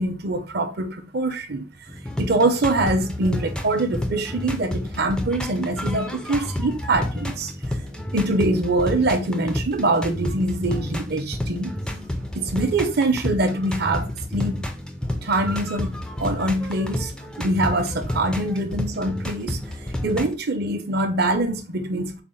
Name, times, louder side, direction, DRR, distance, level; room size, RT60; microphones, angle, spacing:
voice 1, 0.0-1.7 2.2-7.5 8.1-11.7 12.3-14.6 15.2-17.1 17.4-19.6 20.0-22.2, right 2 dB, 50° right, 0.6 m, -24 dB
sound 1, 1.9-20.3, left 1 dB, 5° left, 0.3 m, -30 dB
4.0 x 2.0 x 3.9 m
head